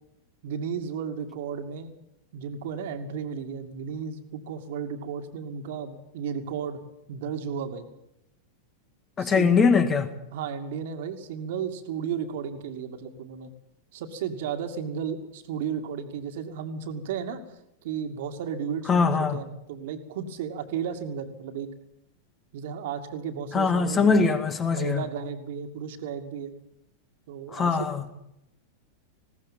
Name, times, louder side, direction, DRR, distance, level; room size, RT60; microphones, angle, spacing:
voice 1, 0.4-2.0 2.3-6.8 7.1-7.9 9.2-9.6 10.3-13.5 13.9-17.4 17.8-21.7 22.5-24.4 24.7-26.5 27.3-27.9, right 7 dB, 55° right, 2.4 m, -34 dB
voice 2, 9.2-10.1 18.9-19.4 23.5-25.0 27.5-28.0, left 5 dB, 20° left, 2.0 m, -22 dB
20.0 x 17.5 x 7.5 m
figure-of-eight pair, 90°, 0 cm